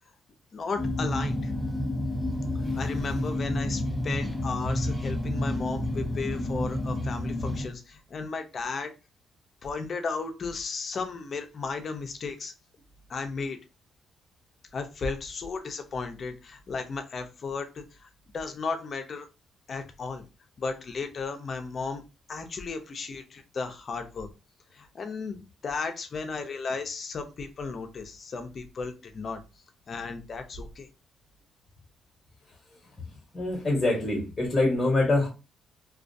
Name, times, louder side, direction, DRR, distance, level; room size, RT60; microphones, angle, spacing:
voice 1, 0.5-1.5 2.8-8.9 9.6-12.5 13.1-13.6 14.7-18.1 18.3-19.3 19.7-20.2 20.6-22.0 22.3-24.3 24.7-25.4 25.6-29.4 29.9-30.9, left 4 dB, 45° left, 6 dB, 0.5 m, -34 dB
sound 1, 0.8-7.7, left 1 dB, ahead, 0.5 m, -30 dB
voice 2, 33.3-35.3, left 2 dB, 30° left, -2 dB, 0.9 m, -24 dB
2.3 x 2.2 x 2.6 m, 0.29 s
cardioid pair, 90°, 0 cm